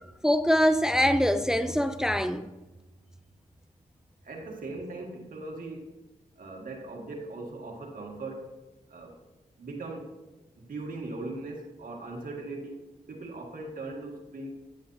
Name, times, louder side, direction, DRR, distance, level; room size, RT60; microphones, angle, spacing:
voice 1, 0.2-2.5, equal, 5° right, 0.4 m, -23 dB
voice 2, 4.2-5.9 6.4-8.5 8.9-9.1 9.6-10.1 10.6-12.8 13.1-14.5, right 2 dB, 65° right, 1.7 m, -39 dB
10.0 x 7.2 x 2.6 m
supercardioid pair, 45°, 15 cm